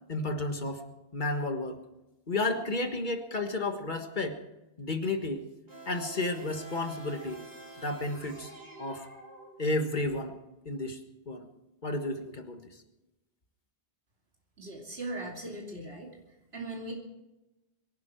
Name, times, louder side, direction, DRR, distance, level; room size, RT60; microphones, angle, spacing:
voice 1, 0.1-0.8 1.1-1.8 2.3-4.4 4.8-5.5 5.8-7.4 7.8-8.5 8.8-9.1 9.6-10.4 10.6-11.0 11.3-11.5 11.8-12.8, left 2 dB, 50° left, 6 dB, 1.7 m, -32 dB
sound 1, 5.7-10.0, right 3 dB, 50° right, 4.1 m, -47 dB
voice 2, 14.6-16.1 16.5-16.9, right 2 dB, 85° right, -1 dB, 2.9 m, -39 dB
23.5 x 11.5 x 4.6 m, 1.0 s
omnidirectional pair, 1.0 m